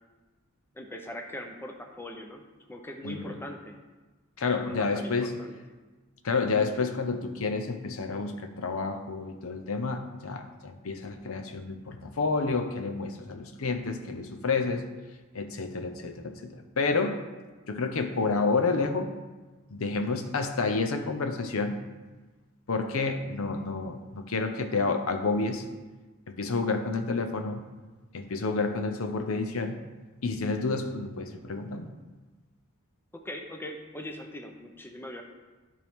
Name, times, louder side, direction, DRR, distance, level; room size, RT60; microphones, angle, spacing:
voice 1, 0.7-2.4 2.7-3.8 4.6-5.6 33.1-35.2, left 1 dB, 10° left, 3 dB, 0.6 m, -41 dB
voice 2, 3.0-3.4 4.4-5.3 6.2-14.9 15.3-17.2 17.7-19.1 19.7-21.8 22.7-25.6 26.3-27.6 28.1-29.8 30.2-31.9, left 4 dB, 65° left, 7 dB, 0.7 m, -29 dB
13.0 x 4.6 x 3.6 m, 1.3 s
head